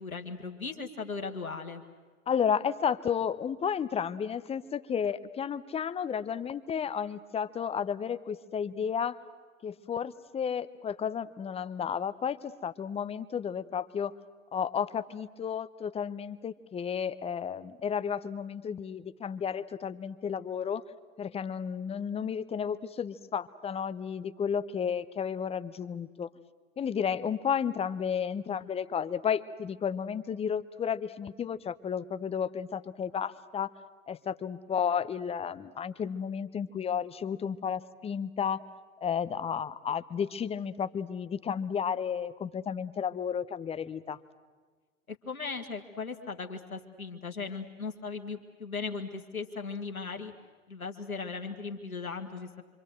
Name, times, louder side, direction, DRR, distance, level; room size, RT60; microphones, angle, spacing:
voice 1, 0.0-1.8 45.1-50.3 50.7-52.6, left 4 dB, 90° left, 4 dB, 1.8 m, -38 dB
voice 2, 2.3-9.2 9.6-14.1 14.5-20.8 21.2-26.3 26.8-33.7 34.1-38.6 39.0-44.2, left 7 dB, 15° left, 14 dB, 0.7 m, -32 dB
27.0 x 25.5 x 7.8 m, 1.4 s
figure-of-eight pair, 95°, 41 cm